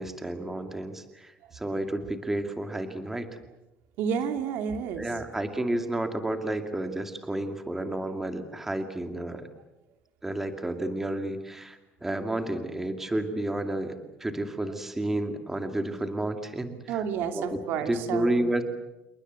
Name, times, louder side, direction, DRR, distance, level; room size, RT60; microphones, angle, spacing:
voice 1, 0.0-3.3 4.9-9.5 10.2-17.0 17.3-18.6, right 1 dB, 10° right, 7 dB, 2.3 m, -31 dB
voice 2, 4.0-5.1 16.9-18.5, right 7 dB, 70° right, 7 dB, 2.8 m, -30 dB
28.5 x 22.0 x 8.1 m, 0.97 s
cardioid pair, 155°, 4 cm